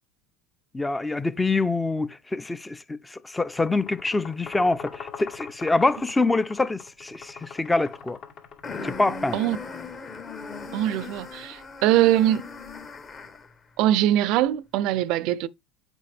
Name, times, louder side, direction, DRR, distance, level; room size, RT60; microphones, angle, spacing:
voice 1, 0.7-8.2 8.8-9.4, left 3 dB, 10° left, 0.5 m, -25 dB
sound 1, 3.5-9.2, left 6 dB, 60° left, 2.4 m, -42 dB
sound 2, 8.6-13.5, left 4 dB, 30° left, 1.3 m, -38 dB
voice 2, 10.7-12.4 13.8-15.5, right 13 dB, 60° right, 0.5 m, -22 dB
8.4 x 4.5 x 3.4 m
hypercardioid pair, 95°, 0 cm